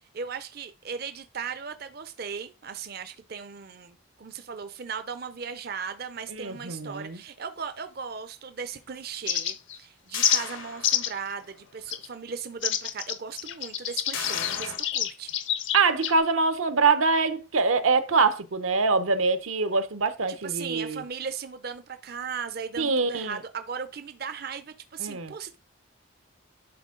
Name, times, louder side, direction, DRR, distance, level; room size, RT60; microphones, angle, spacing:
voice 1, 0.1-15.3 20.3-25.6, right 6 dB, 50° right, 0.5 m, -37 dB
voice 2, 6.4-7.2 15.7-21.0 22.8-23.4 25.0-25.3, right 4 dB, 80° right, 0.8 m, -24 dB
sound 1, 9.3-9.8 10.2-10.4 10.8-11.2 11.9-12.1 12.6-16.2, left 10 dB, 65° left, 0.8 m, -27 dB
sound 2, 10.1-11.4 11.8-11.9 14.1-14.8, left 7 dB, 80° left, 1.5 m, -35 dB
11.0 x 4.3 x 3.8 m
head